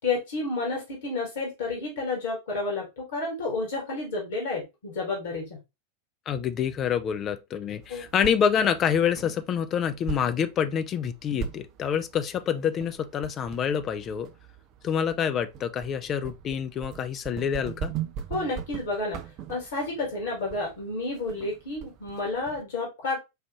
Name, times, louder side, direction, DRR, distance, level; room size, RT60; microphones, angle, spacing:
voice 1, 0.0-5.6 7.9-8.1 18.3-19.2 19.5-23.2, left 3 dB, 60° left, 1.6 m, -30 dB
voice 2, 6.3-14.3 14.8-17.9, left 8 dB, 30° left, 0.5 m, -27 dB
sound 1, 7.7-22.6, right 8 dB, 40° right, 0.4 m, -41 dB
4.7 x 2.5 x 3.0 m
figure-of-eight pair, 90°, 0 cm